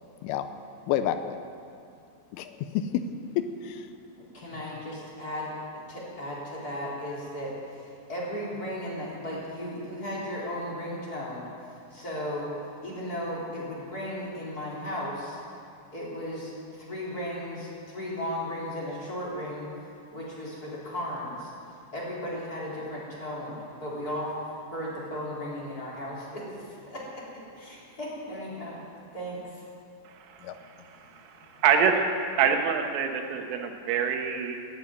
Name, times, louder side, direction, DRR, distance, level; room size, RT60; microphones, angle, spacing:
voice 1, 0.9-1.4 2.3-3.1 3.4-3.9 30.4-30.6, left 10 dB, 85° left, 9 dB, 3.1 m, -29 dB
voice 2, 4.2-5.6 5.9-7.5 8.1-11.5 11.9-12.5 12.8-15.4 15.9-16.5 16.8-19.7 20.1-21.5 21.9-24.3 24.7-27.2 27.5-28.8 29.1-29.6, equal, 20° left, -6 dB, 3.5 m, -35 dB
voice 3, 30.9-31.2 31.6-32.0 32.4-34.6, right 7 dB, 90° right, 4 dB, 3.8 m, -25 dB
14.0 x 9.9 x 9.4 m, 2.6 s
omnidirectional pair, 5.6 m